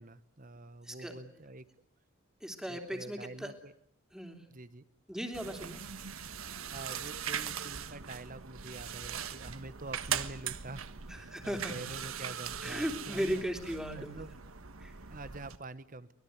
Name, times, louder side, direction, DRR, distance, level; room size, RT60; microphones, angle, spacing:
voice 1, 0.0-1.6 2.7-3.7 4.5-4.8 6.7-13.4 13.9-14.3 15.1-16.1, right 2 dB, 40° right, 14 dB, 1.2 m, -46 dB
voice 2, 0.8-1.2 2.4-3.5 4.1-4.5 5.1-5.8 11.1-11.9 12.6-14.3 14.8-14.9, equal, 5° right, 5 dB, 3.3 m, -37 dB
sound 1, 5.3-15.6, right 8 dB, 85° right, 1.5 m, -40 dB
24.5 x 21.0 x 9.5 m, 0.68 s
head